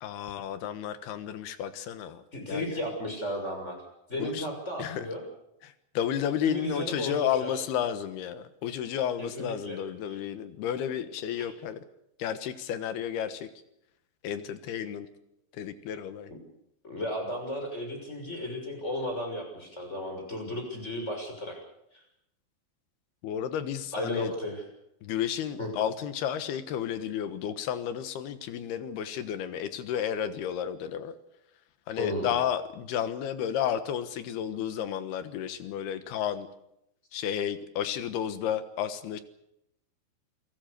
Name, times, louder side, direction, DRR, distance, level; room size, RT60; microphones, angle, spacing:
voice 1, 0.0-2.8 4.2-4.5 4.8-5.1 5.6-11.8 12.2-13.5 14.2-15.1 15.6-16.3 23.2-24.3 25.0-31.2 31.9-36.5 37.1-39.2, left 9 dB, 65° left, 11 dB, 2.9 m, -32 dB
voice 2, 2.3-3.8 4.1-5.2 6.5-7.6 9.2-9.8 10.1-10.2 11.4-11.5 16.8-21.6 21.9-22.0 23.9-24.6 25.6-25.7 32.0-32.4, left 1 dB, 15° left, 3 dB, 6.3 m, -34 dB
28.5 x 18.0 x 6.8 m, 0.81 s
omnidirectional pair, 5.6 m